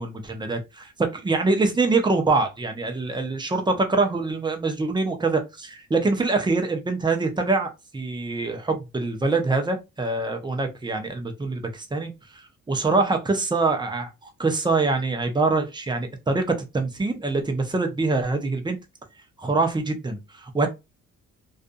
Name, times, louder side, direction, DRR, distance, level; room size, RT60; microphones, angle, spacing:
voice 1, 0.0-18.8 19.4-20.7, right 3 dB, 15° right, 0.7 m, -24 dB
2.5 x 2.4 x 2.5 m
cardioid pair, 90°, 30 cm